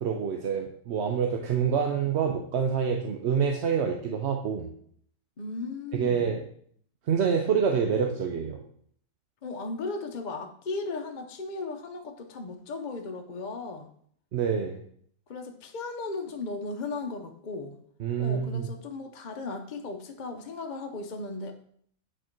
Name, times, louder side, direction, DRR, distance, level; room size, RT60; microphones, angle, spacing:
voice 1, 0.0-4.7 5.9-6.4 7.1-8.6 14.3-14.8 18.0-18.7, right 7 dB, 60° right, 3 dB, 0.9 m, -27 dB
voice 2, 5.4-6.3 9.4-13.9 15.3-17.8 18.2-21.5, left 3 dB, 45° left, 4 dB, 0.7 m, -36 dB
8.8 x 4.4 x 4.5 m, 0.62 s
omnidirectional pair, 1.5 m